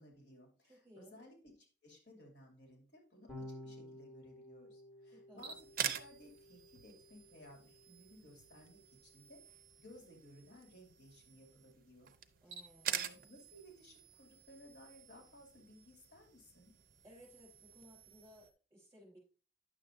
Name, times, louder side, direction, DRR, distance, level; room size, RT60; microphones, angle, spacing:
voice 1, 0.0-12.1 12.5-16.8, left 1 dB, 80° left, 1 dB, 2.5 m, -59 dB
voice 2, 0.7-1.2 5.1-5.6 12.4-12.9 17.0-19.2, equal, 15° right, -1 dB, 3.5 m, -60 dB
Electric guitar / Bass guitar, 3.3-9.7, left 1 dB, 5° left, 2.3 m, -55 dB
sound 1, 5.4-18.5, right 9 dB, 50° right, 0.5 m, -47 dB
9.6 x 6.7 x 2.6 m, 0.36 s
head